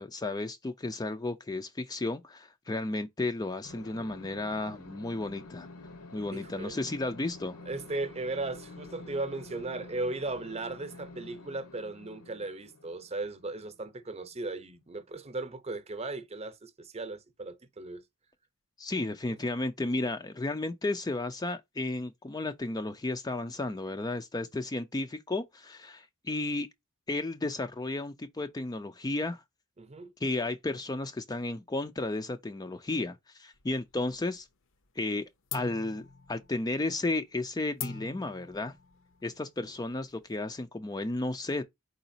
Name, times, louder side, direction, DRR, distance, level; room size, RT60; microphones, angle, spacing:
voice 1, 0.0-5.7 6.1-7.6 18.8-26.7 27.1-29.4 30.2-34.5 35.0-38.7 39.2-41.6, left 2 dB, 15° left, 0.4 m, -33 dB
sound 1, 3.6-14.7, left 2 dB, 80° left, 1.0 m, -49 dB
voice 2, 6.3-6.8 7.7-18.0 29.8-30.1, right 2 dB, 30° right, 0.8 m, -37 dB
sound 2, 33.5-34.4 34.7-35.1 35.5-40.6, left 7 dB, 60° left, 0.7 m, -44 dB
4.8 x 3.9 x 2.7 m
head